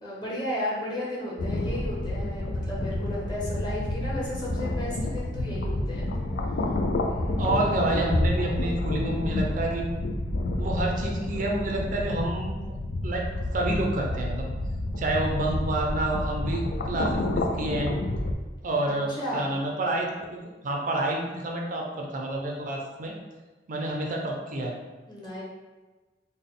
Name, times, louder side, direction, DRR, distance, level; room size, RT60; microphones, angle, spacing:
voice 1, 0.0-6.1 7.1-7.4 18.9-19.5 25.1-25.4, left 1 dB, 25° left, -5 dB, 1.0 m, -34 dB
sound 1, 1.4-18.3, left 1 dB, 75° left, 0.4 m, -29 dB
voice 2, 7.4-9.9 10.6-12.5 13.0-13.2 13.5-14.5 15.0-17.9 18.6-23.1 23.7-24.8, right 2 dB, 50° right, 0 dB, 0.5 m, -29 dB
3.6 x 2.1 x 3.7 m, 1.2 s
head